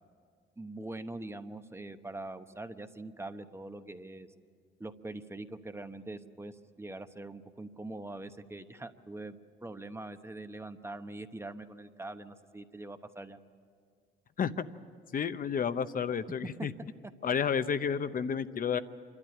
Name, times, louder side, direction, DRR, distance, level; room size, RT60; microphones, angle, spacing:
voice 1, 0.6-4.3 4.8-13.4, right 2 dB, 15° right, 9 dB, 0.9 m, -43 dB
voice 2, 15.1-16.7 17.2-18.8, left 7 dB, 45° left, 12 dB, 0.8 m, -31 dB
27.0 x 12.5 x 9.9 m, 2.1 s
cardioid pair, 90°, 20 cm